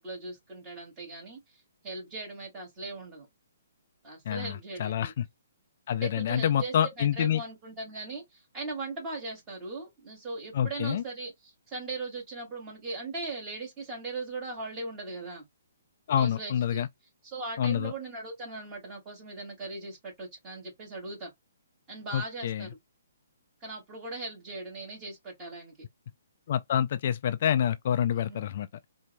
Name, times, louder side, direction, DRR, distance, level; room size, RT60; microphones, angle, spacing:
voice 1, 0.0-1.4 1.8-3.3 4.0-5.1 5.9-15.4 16.2-16.9 17.2-21.3 21.9-22.8 23.6-25.7 28.2-28.4, right 3 dB, 20° right, 2.5 m, -39 dB
voice 2, 4.3-5.3 5.9-7.4 10.5-11.0 16.1-16.9 17.6-17.9 22.1-22.7 26.5-28.7, left 9 dB, 45° left, 0.3 m, -27 dB
4.4 x 2.6 x 2.2 m
hypercardioid pair, 155°, 0 cm